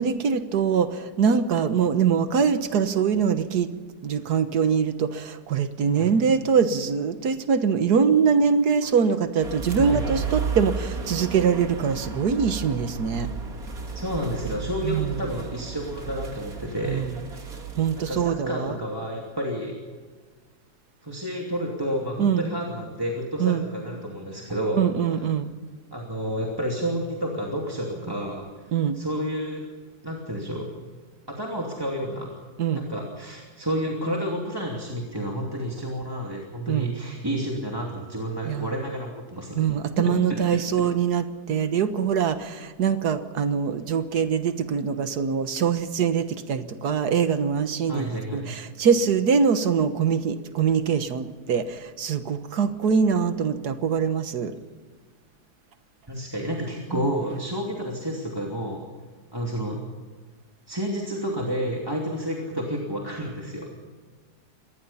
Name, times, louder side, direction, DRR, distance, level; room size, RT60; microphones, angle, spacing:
voice 1, 0.0-3.7 4.0-13.3 14.8-15.1 16.9-17.1 17.8-18.8 22.2-22.5 23.4-23.6 24.8-25.5 28.7-29.0 32.6-32.8 36.7-36.9 38.5-38.7 39.6-54.5 56.9-57.1, right 6 dB, 80° right, 10 dB, 1.8 m, -23 dB
sound 1, 9.4-18.3, right 4 dB, 60° right, 2.8 m, -33 dB
voice 2, 13.9-17.1 17.9-19.8 21.0-25.3 25.9-29.6 30.0-30.7 31.3-32.4 32.7-39.5 40.0-40.2 47.9-48.5 56.1-58.8 59.3-59.8 60.7-63.8, equal, 15° right, -1 dB, 2.8 m, -30 dB
25.0 x 19.5 x 5.7 m, 1.5 s
omnidirectional pair, 1.7 m